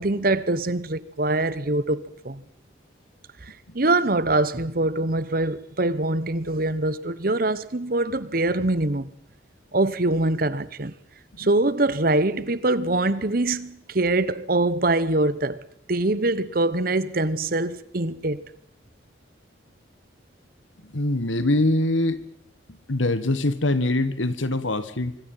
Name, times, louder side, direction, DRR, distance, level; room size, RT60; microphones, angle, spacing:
voice 1, 0.0-2.4 3.4-9.1 9.7-10.9 11.4-15.6 15.9-18.4, right 2 dB, 50° right, 1.1 m, -24 dB
voice 2, 20.8-22.2 22.9-25.2, left 2 dB, 85° left, 1.8 m, -23 dB
25.0 x 23.0 x 5.7 m
head